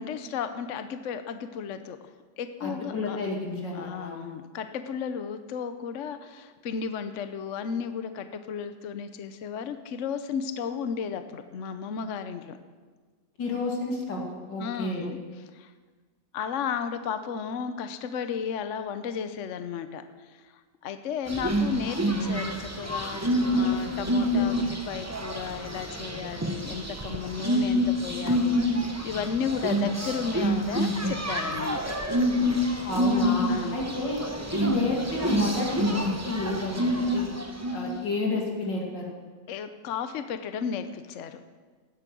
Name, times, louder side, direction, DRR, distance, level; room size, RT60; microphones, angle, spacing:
voice 1, 0.0-3.2 3.7-12.6 14.6-15.7 16.3-31.9 33.5-33.8 39.5-41.4, left 7 dB, 55° left, 9 dB, 0.9 m, -34 dB
voice 2, 2.6-4.2 13.4-14.2 14.5-15.1 32.8-34.2 34.5-37.3 37.7-39.1, left 2 dB, 85° left, -1 dB, 3.2 m, -30 dB
sound 1, 21.3-38.0, equal, 10° right, 0.8 m, -27 dB
17.0 x 9.0 x 6.2 m, 1.4 s
omnidirectional pair, 1.9 m